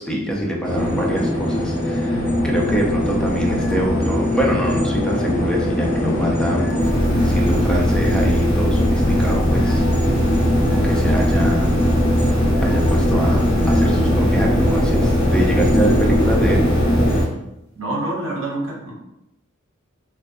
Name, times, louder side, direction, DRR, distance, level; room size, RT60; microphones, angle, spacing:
voice 1, 0.0-6.7 7.2-9.8 10.6-11.8 12.6-16.7, equal, 5° left, -2 dB, 0.4 m, -24 dB
sound 1, 0.6-17.2, equal, 45° left, 0.7 m, -21 dB
sound 2, 2.1-14.2, left 2 dB, 85° left, 0.4 m, -34 dB
sound 3, 6.8-17.2, equal, 15° right, 1.3 m, -21 dB
voice 2, 17.8-18.9, right 2 dB, 75° right, -2 dB, 0.6 m, -26 dB
2.5 x 2.2 x 2.4 m, 0.86 s
head